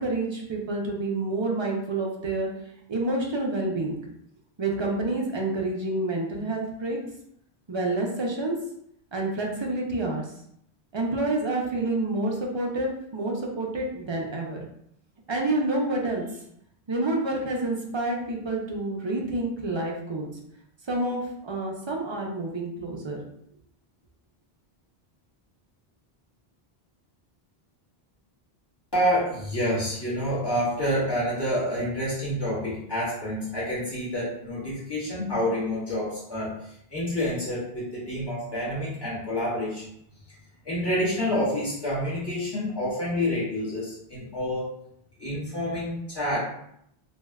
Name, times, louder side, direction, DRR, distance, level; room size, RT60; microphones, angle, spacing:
voice 1, 0.0-2.5 2.9-3.9 4.6-7.0 7.7-8.6 9.1-10.2 10.9-14.7 15.3-16.2 16.9-20.3 20.9-23.2, right 2 dB, 45° right, -1 dB, 0.4 m, -28 dB
voice 2, 28.9-39.9 40.6-44.7 45.2-46.4, equal, 25° left, -10 dB, 1.5 m, -28 dB
3.2 x 2.6 x 2.2 m, 0.73 s
omnidirectional pair, 1.0 m